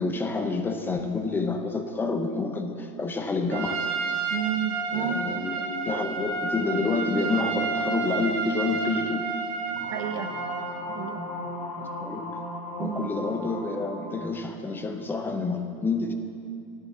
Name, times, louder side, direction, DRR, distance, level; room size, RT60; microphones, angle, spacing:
voice 1, 0.0-3.9 4.9-9.3 11.8-12.5 12.8-16.1, left 3 dB, 10° left, 6 dB, 0.6 m, -28 dB
Trumpet, 3.5-10.8, right 4 dB, 55° right, 2.1 m, -30 dB
voice 2, 4.3-5.4 9.9-10.3 10.9-11.3 12.8-13.1, right 9 dB, 75° right, 7 dB, 1.0 m, -31 dB
sound 1, 9.8-14.3, left 2 dB, 90° left, 2.1 m, -36 dB
11.0 x 7.8 x 7.1 m, 2.5 s
supercardioid pair, 150°, 17 cm